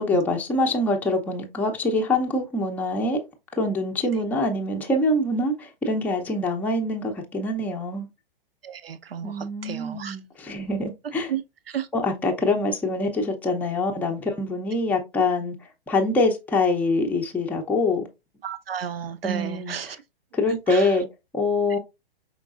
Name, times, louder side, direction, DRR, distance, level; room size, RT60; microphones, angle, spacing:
voice 1, 0.0-3.2 3.6-8.1 9.2-11.3 11.9-15.6 15.9-18.1 19.2-20.0 20.3-21.1 21.3-21.8, left 2 dB, 5° left, 0.5 m, -24 dB
voice 2, 8.6-10.2 11.3-11.4 11.7-11.9 18.4-20.0 20.5-20.9, right 8 dB, 80° right, 0.6 m, -32 dB
5.2 x 3.7 x 2.4 m
figure-of-eight pair, 115°, 29 cm